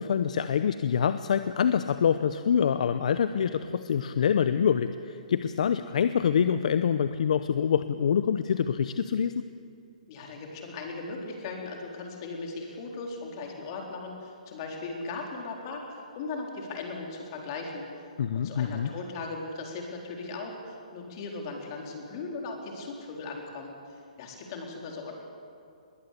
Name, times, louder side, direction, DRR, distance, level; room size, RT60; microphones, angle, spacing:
voice 1, 0.0-9.4 18.2-18.9, left 7 dB, 60° left, 11 dB, 0.8 m, -26 dB
voice 2, 10.1-25.1, left 3 dB, 35° left, 1 dB, 4.2 m, -38 dB
21.5 x 18.5 x 8.6 m, 2.4 s
hypercardioid pair, 160°, 4 cm